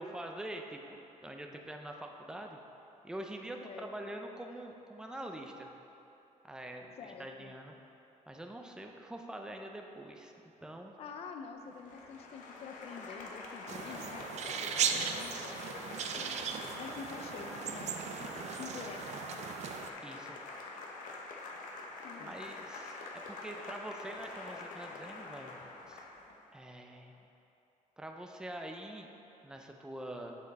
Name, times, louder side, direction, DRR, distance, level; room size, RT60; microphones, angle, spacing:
voice 1, 0.0-2.6 3.0-5.7 6.4-7.7 8.3-10.3 10.6-10.9 20.0-20.4 22.2-25.6 25.9-26.0 26.5-27.1 28.0-29.1 29.4-30.4, right 1 dB, 5° right, 2 dB, 0.5 m, -45 dB
voice 2, 3.6-4.1 7.0-7.5 11.0-15.9 16.1-16.3 16.8-19.4 22.0-22.4, left 5 dB, 50° left, 5 dB, 0.5 m, -48 dB
Applause, 11.6-26.4, left 3 dB, 80° left, 0.9 m, -46 dB
sound 1, 13.7-19.9, right 7 dB, 55° right, 0.4 m, -37 dB
7.5 x 6.6 x 4.0 m, 2.9 s
cardioid pair, 145°, 13 cm